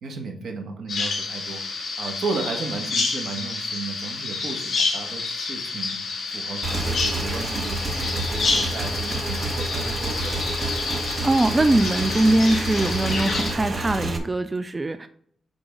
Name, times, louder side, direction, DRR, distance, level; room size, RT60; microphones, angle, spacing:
voice 1, 0.0-1.6 2.0-6.0 6.3-10.9, right 4 dB, 70° right, 2 dB, 1.6 m, -34 dB
Bird vocalization bird call bird song, 0.9-13.5, left 4 dB, 55° left, 2.9 m, -29 dB
Motorcycle / Engine, 6.6-14.2, right 2 dB, 35° right, 1.1 m, -29 dB
voice 2, 11.2-15.1, right 2 dB, 20° right, 9 dB, 0.3 m, -21 dB
8.8 x 3.9 x 3.8 m, 0.63 s
wide cardioid pair, 130°, 0 cm